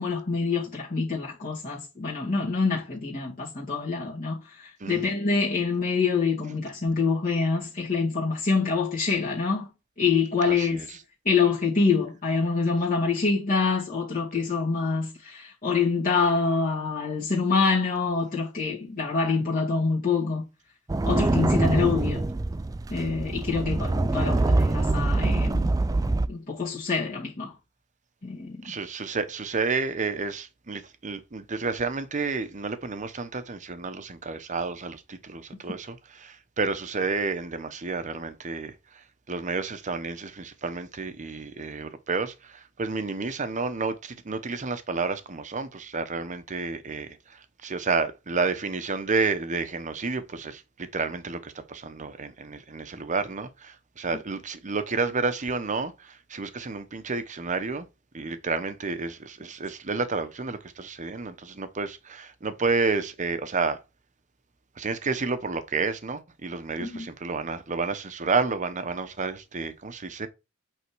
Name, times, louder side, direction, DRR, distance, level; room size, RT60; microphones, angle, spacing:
voice 1, 0.0-9.7 10.0-10.8 11.2-20.4 21.0-22.2 22.9-25.7 26.3-27.5 28.2-28.6 66.8-67.1, left 4 dB, 45° left, 2.4 m, -26 dB
voice 2, 10.5-11.0 28.6-57.9 58.1-63.8 64.8-70.3, right 4 dB, 40° right, 0.8 m, -30 dB
sound 1, 20.9-26.3, right 2 dB, 15° right, 0.3 m, -24 dB
8.3 x 3.6 x 4.6 m
head